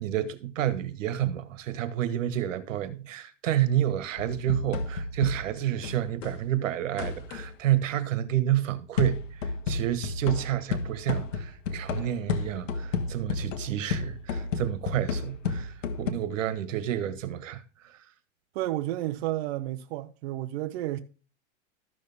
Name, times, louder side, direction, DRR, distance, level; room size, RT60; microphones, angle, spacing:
voice 1, 0.0-18.0, right 12 dB, 90° right, 1.5 m, -29 dB
sound 1, 4.2-6.4 7.0-7.5 9.0-16.1, left 4 dB, 90° left, 1.6 m, -32 dB
voice 2, 18.5-21.0, right 15 dB, 55° right, 0.8 m, -31 dB
13.0 x 6.7 x 3.5 m
supercardioid pair, 160°, 37 cm